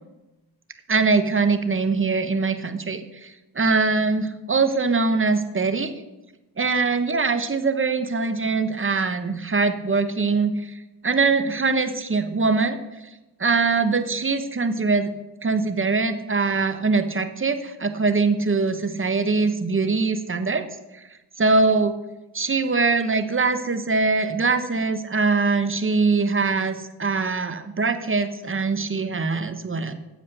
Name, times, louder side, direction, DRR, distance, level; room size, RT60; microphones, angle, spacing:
voice 1, 0.9-5.9 6.6-10.8 11.0-12.8 13.4-15.1 15.4-20.6 20.9-21.0 21.4-22.0 22.3-29.9, right 4 dB, 30° right, 10 dB, 1.2 m, -22 dB
9.1 x 7.4 x 6.4 m, 1.0 s
cardioid pair, 60°, 43 cm